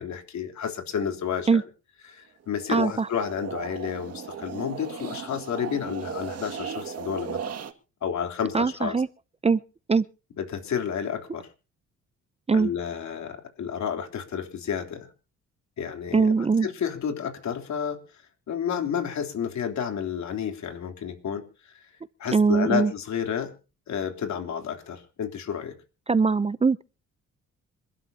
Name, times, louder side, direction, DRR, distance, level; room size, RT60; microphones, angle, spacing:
voice 1, 0.0-1.6 2.1-7.5 8.0-9.0 10.4-11.5 12.5-15.1 15.8-21.9 22.2-23.5 23.9-25.8, left 8 dB, 65° left, 3.6 m, -31 dB
sound 1, 2.5-7.7, right 7 dB, 55° right, 2.2 m, -37 dB
voice 2, 2.7-3.1 8.5-9.1 9.4-9.6 9.9-10.0 12.5-12.7 16.1-16.7 22.3-22.9 26.1-26.8, right 4 dB, 20° right, 0.6 m, -21 dB
27.0 x 12.0 x 2.9 m
cardioid pair, 90°, 30 cm